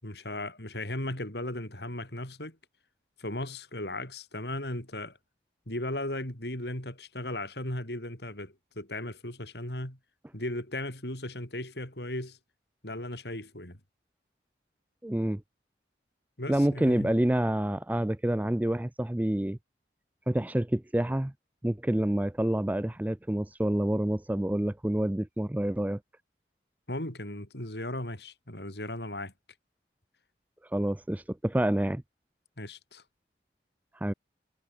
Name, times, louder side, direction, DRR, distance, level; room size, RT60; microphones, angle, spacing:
voice 1, 0.0-2.6 3.2-5.2 5.7-10.0 10.3-12.4 12.8-13.8 16.4-17.1 26.9-29.3 32.6-33.0, left 1 dB, 75° left, 6.3 m, -36 dB
voice 2, 15.0-15.4 16.5-19.6 20.3-21.3 21.6-26.0 30.7-32.0 34.0-34.1, right 1 dB, 10° right, 0.4 m, -28 dB
head